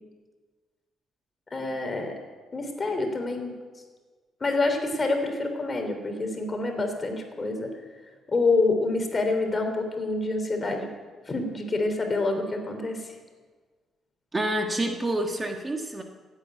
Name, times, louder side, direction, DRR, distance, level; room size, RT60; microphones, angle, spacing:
voice 1, 1.5-2.2 2.5-3.5 4.4-7.7 8.3-10.9 11.3-13.1, left 3 dB, 30° left, 4 dB, 3.2 m, -27 dB
voice 2, 14.3-16.0, right 1 dB, 20° right, 3 dB, 1.5 m, -28 dB
15.5 x 8.9 x 9.2 m, 1.4 s
cardioid pair, 90°, 0 cm